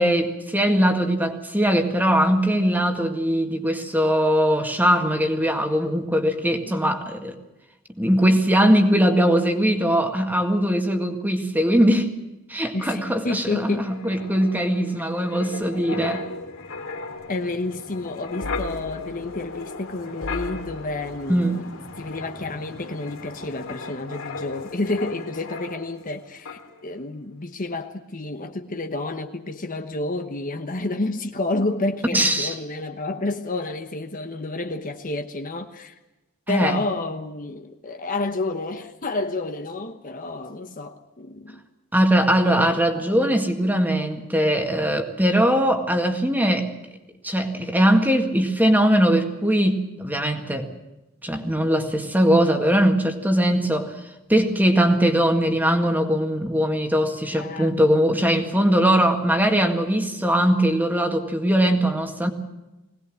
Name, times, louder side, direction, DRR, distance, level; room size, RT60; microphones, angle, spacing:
voice 1, 0.0-7.4 8.0-12.1 12.5-16.3 21.3-21.6 32.1-32.5 36.5-36.8 41.9-46.7 47.2-50.7 51.2-53.9 54.3-62.3, equal, 10° right, 4 dB, 1.9 m, -20 dB
voice 2, 12.7-13.9 17.3-21.7 22.0-35.9 36.5-41.6 42.4-43.4 57.3-57.7, left 2 dB, 40° left, 6 dB, 1.1 m, -30 dB
Wind, 13.8-26.2 26.5-26.7, left 3 dB, 65° left, 2.5 m, -36 dB
22.0 x 19.0 x 7.6 m, 0.99 s
head